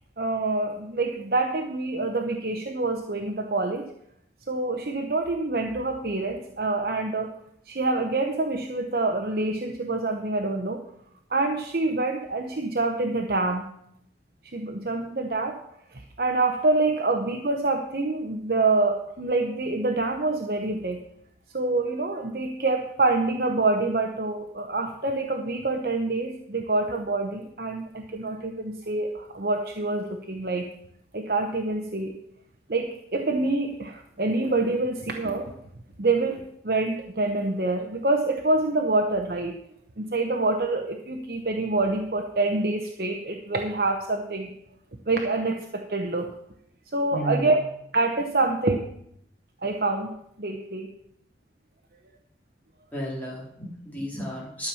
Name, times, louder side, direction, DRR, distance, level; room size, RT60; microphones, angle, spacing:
voice 1, 0.2-3.9 4.5-7.3 7.7-10.8 11.3-13.6 14.5-15.6 15.9-21.0 21.5-30.7 31.1-32.1 32.7-35.5 36.0-39.5 40.0-44.5 45.1-46.3 46.9-47.6 47.9-48.9 49.6-50.9, right 2 dB, 55° right, 3 dB, 0.9 m, -26 dB
voice 2, 47.1-47.5 52.9-54.7, equal, 10° left, -4 dB, 3.0 m, -32 dB
12.5 x 7.1 x 5.7 m, 0.74 s
head